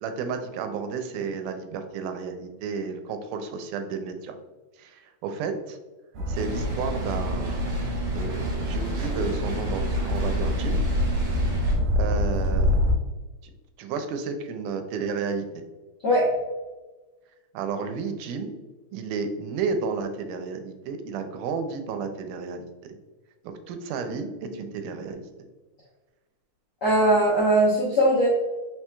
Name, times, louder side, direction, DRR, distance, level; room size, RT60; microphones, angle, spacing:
voice 1, 0.0-4.4 4.8-5.8 6.3-7.6 8.1-10.8 12.0-12.8 13.8-15.6 17.5-18.6 18.9-22.7 23.4-25.3, right 5 dB, 90° right, 7 dB, 2.1 m, -32 dB
sound 1, 6.1-12.9, left 1 dB, 70° right, 1.8 m, -26 dB
sound 2, 6.3-11.7, right 6 dB, 45° right, 1.3 m, -36 dB
voice 2, 26.8-28.3, right 1 dB, 90° left, -7 dB, 0.9 m, -20 dB
4.5 x 4.3 x 2.2 m, 1.2 s
omnidirectional pair, 3.6 m